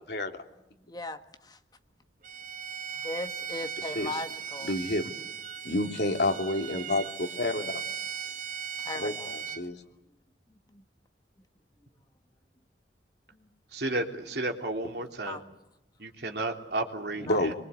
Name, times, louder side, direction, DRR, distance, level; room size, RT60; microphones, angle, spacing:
voice 1, 0.9-1.6 2.9-4.7 8.8-9.3 10.7-10.8 15.2-15.4 17.2-17.5, left 2 dB, 25° left, 7 dB, 1.6 m, -38 dB
Bowed string instrument, 2.2-9.6, right 7 dB, 50° right, 1.4 m, -38 dB
voice 2, 4.6-5.1 5.6-7.7 8.9-9.8 17.2-17.5, left 1 dB, 65° left, 4 dB, 3.0 m, -29 dB
voice 3, 13.7-15.4 16.0-17.5, right 2 dB, 65° right, 3 dB, 3.4 m, -32 dB
26.5 x 23.0 x 8.3 m, 0.90 s
head